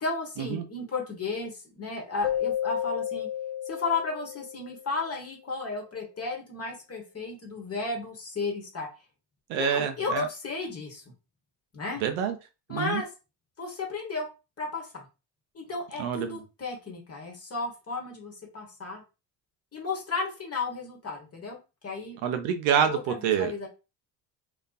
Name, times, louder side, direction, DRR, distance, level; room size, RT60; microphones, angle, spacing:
voice 1, 0.0-3.3 3.7-8.9 9.5-11.0 11.7-12.0 12.7-13.1 13.6-14.3 14.6-15.0 15.5-19.0 19.7-21.6 21.8-22.2 22.9-23.7, left 3 dB, 30° left, 1 dB, 1.1 m, -33 dB
Keyboard (musical), 2.2-5.0, left 11 dB, 60° left, 0.5 m, -32 dB
voice 2, 9.5-10.3 12.0-12.4 12.7-13.0 16.0-16.4 22.2-23.7, right 8 dB, 65° right, 8 dB, 0.7 m, -27 dB
2.4 x 2.3 x 2.3 m, 0.29 s
hypercardioid pair, 60°, 49 cm